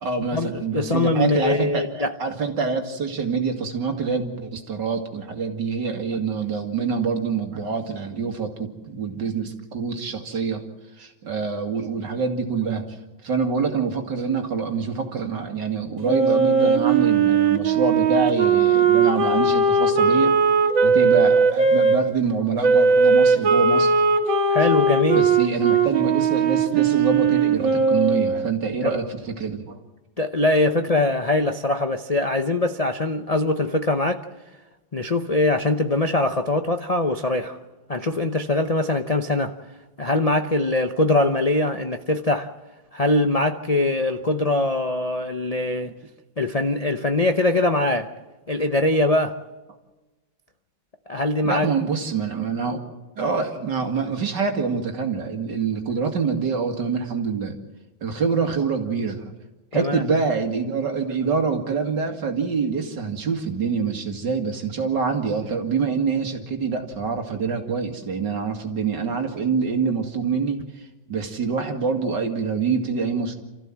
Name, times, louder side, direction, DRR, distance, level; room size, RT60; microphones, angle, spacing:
voice 1, 0.0-10.7 11.0-13.0 13.2-20.5 20.8-24.0 25.1-29.8 51.4-52.8 53.2-57.6 58.0-59.3 59.7-73.4, right 5 dB, 65° right, 2.8 m, -25 dB
voice 2, 0.7-2.1 24.5-25.3 28.8-29.0 30.2-34.2 34.9-37.6 37.9-39.6 40.0-42.5 42.9-45.9 46.4-48.1 48.5-49.4 51.1-51.7 59.7-60.0, left 2 dB, 40° left, 0.5 m, -22 dB
Wind instrument woodwind instrument, 16.0-22.0 22.6-28.5, right 4 dB, 85° right, 2.6 m, -19 dB
28.5 x 14.5 x 7.5 m
omnidirectional pair, 2.1 m